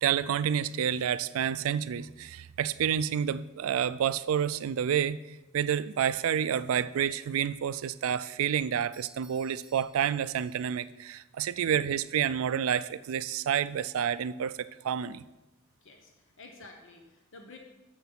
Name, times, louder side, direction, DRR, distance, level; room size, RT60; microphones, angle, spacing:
voice 1, 0.0-5.2 5.5-15.2, right 8 dB, 70° right, 15 dB, 0.3 m, -29 dB
Doorbell, 8.9-10.9, right 2 dB, 20° right, 1.6 m, -58 dB
voice 2, 15.8-17.6, left 3 dB, 65° left, 2 dB, 1.0 m, -51 dB
7.2 x 5.5 x 5.9 m, 1.0 s
head